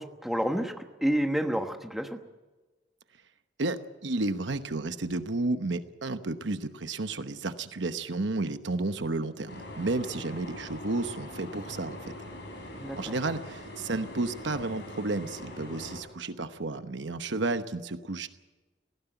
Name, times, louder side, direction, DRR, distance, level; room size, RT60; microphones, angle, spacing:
voice 1, 0.0-2.2 12.8-13.2, equal, ahead, 5 dB, 1.2 m, -29 dB
voice 2, 3.6-12.1 13.0-18.3, right 2 dB, 70° right, 10 dB, 1.0 m, -32 dB
sound 1, 9.5-16.0, left 1 dB, 65° left, 5.6 m, -42 dB
18.0 x 16.0 x 9.2 m, 1.2 s
head